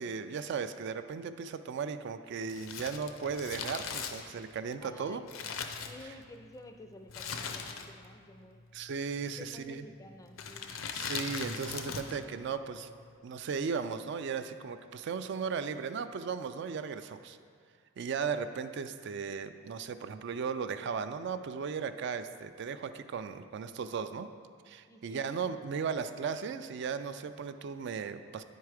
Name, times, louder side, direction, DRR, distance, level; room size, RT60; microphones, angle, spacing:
voice 1, 0.0-5.2 8.7-9.8 10.9-12.9 13.2-17.4 18.0-24.3 24.7-28.4, right 6 dB, 60° right, 10 dB, 0.3 m, -36 dB
Crumpling crinkling, 2.4-6.4 7.1-8.1 8.4-8.5 9.3-9.7 10.3-12.2 12.5-12.6, left 6 dB, 80° left, 0.6 m, -39 dB
voice 2, 4.8-8.6 9.2-10.8 24.9-25.3, left 1 dB, 15° left, 6 dB, 0.4 m, -52 dB
9.4 x 4.6 x 4.8 m, 2.1 s
head